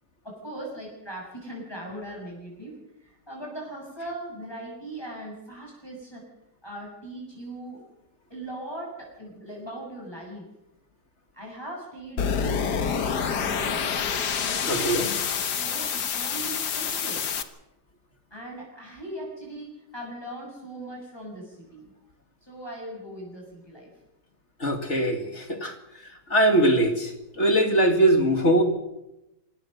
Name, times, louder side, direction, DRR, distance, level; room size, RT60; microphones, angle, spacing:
voice 1, 0.2-2.8 3.0-6.3 6.6-7.8 8.3-10.4 11.3-12.5 12.8-13.9 14.4-15.0 15.2-17.2 18.3-21.9 22.4-23.9, right 1 dB, 15° left, -2 dB, 7.1 m, -39 dB
sound 1, 12.2-17.4, left 6 dB, 70° left, 1.9 m, -27 dB
voice 2, 14.7-15.2 24.6-25.8 26.3-28.6, right 1 dB, 40° left, 6 dB, 2.5 m, -21 dB
25.5 x 17.5 x 6.7 m, 0.91 s
omnidirectional pair, 1.8 m